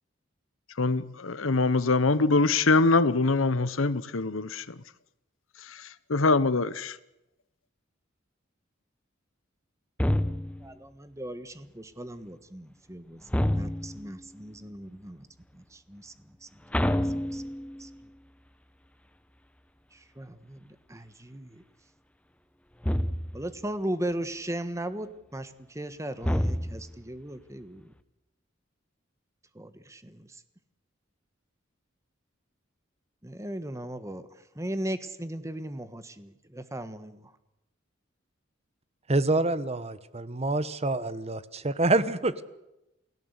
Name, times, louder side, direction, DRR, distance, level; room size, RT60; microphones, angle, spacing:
voice 1, 0.8-4.7 5.7-7.0, left 3 dB, 90° left, 1.0 m, -24 dB
sound 1, 10.0-10.7 13.3-14.1 16.7-17.9 22.8-23.5 26.2-27.0, equal, 5° left, 0.9 m, -28 dB
voice 2, 10.6-15.3 15.5-16.6 17.0-17.4 17.8-17.9 19.9-21.6 23.3-27.9 29.5-30.4 33.2-37.3, right 1 dB, 15° right, 1.4 m, -38 dB
voice 3, 39.1-42.4, right 2 dB, 30° right, 1.1 m, -27 dB
29.0 x 17.0 x 8.2 m
head